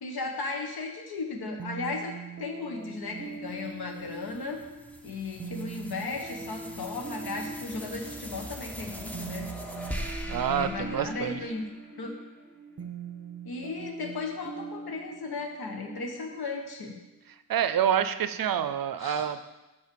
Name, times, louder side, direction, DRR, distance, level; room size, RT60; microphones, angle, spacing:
voice 1, 0.0-2.1 2.4-4.6 5.0-9.5 10.4-11.6 12.0-12.1 13.4-17.0 19.0-19.3, left 3 dB, 85° left, 3 dB, 1.1 m, -35 dB
sound 1, 1.6-17.2, right 4 dB, 40° right, 0.9 m, -42 dB
sound 2, 3.5-12.1, equal, 5° left, 0.7 m, -42 dB
voice 2, 10.3-11.4 17.5-19.4, right 9 dB, 65° right, 11 dB, 0.5 m, -27 dB
6.7 x 5.4 x 6.9 m, 1.0 s
wide cardioid pair, 140°, 37 cm